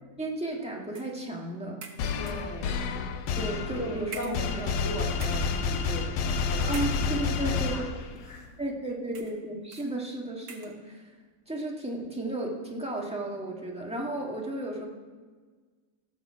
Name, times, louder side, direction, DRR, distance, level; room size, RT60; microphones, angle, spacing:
voice 1, 0.2-1.8 3.4-4.3 6.7-7.8 8.6-11.1 11.5-14.9, right 1 dB, 5° right, -2 dB, 1.8 m, -33 dB
sound 1, 0.9-1.2 1.8-2.6 3.4-3.5 4.1-4.9 5.1-5.6 6.7-7.4 8.2-8.3 9.1-9.4 9.7-10.0 10.5-10.8, right 5 dB, 75° right, 1.7 m, -45 dB
sound 2, 2.0-8.3, left 5 dB, 85° left, 1.4 m, -30 dB
voice 2, 2.2-3.0 3.4-8.5, equal, 40° left, 0 dB, 2.2 m, -39 dB
17.5 x 7.2 x 5.0 m, 1.4 s
omnidirectional pair, 1.9 m